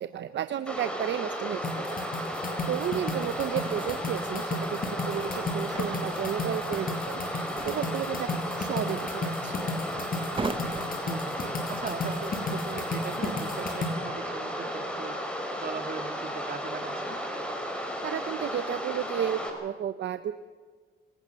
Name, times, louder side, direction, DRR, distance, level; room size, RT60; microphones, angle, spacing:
voice 1, 0.0-1.7 2.7-4.8 5.1-8.3 8.6-9.6 18.0-20.3, right 10 dB, 65° right, 11 dB, 1.0 m, -32 dB
sound 1, 0.7-19.5, equal, 5° left, 5.8 m, -34 dB
sound 2, 1.6-13.9, left 3 dB, 45° left, 6.4 m, -34 dB
sound 3, 2.9-13.3, right 3 dB, 25° right, 1.6 m, -43 dB
voice 2, 11.0-15.2 15.6-17.2, right 6 dB, 45° right, 8 dB, 2.3 m, -40 dB
25.5 x 19.0 x 7.0 m, 1.5 s
cardioid pair, 90°, 20 cm